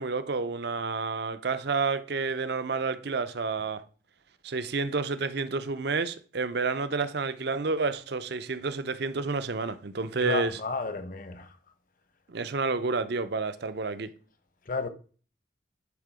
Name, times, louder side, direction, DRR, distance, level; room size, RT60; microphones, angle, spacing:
voice 1, 0.0-3.8 4.4-10.6 12.3-14.1, right 4 dB, 55° right, 0.6 m, -30 dB
voice 2, 10.2-11.5 14.7-14.9, left 4 dB, 45° left, 0.9 m, -32 dB
10.5 x 3.6 x 4.9 m
head